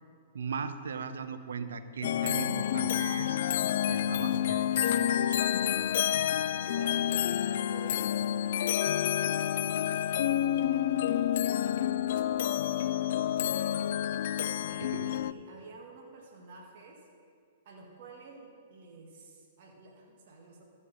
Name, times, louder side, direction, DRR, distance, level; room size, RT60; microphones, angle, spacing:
voice 1, 0.3-3.4 3.9-5.5 14.8-15.1, right 6 dB, 75° right, 10 dB, 0.7 m, -38 dB
sound 1, 2.0-15.3, left 11 dB, 60° left, 0.3 m, -29 dB
voice 2, 6.6-10.1 10.5-11.8 12.2-13.9 14.6-17.1 17.6-20.6, right 3 dB, 55° right, -1 dB, 1.8 m, -51 dB
14.0 x 5.3 x 6.5 m, 2.1 s
hypercardioid pair, 120°, 0 cm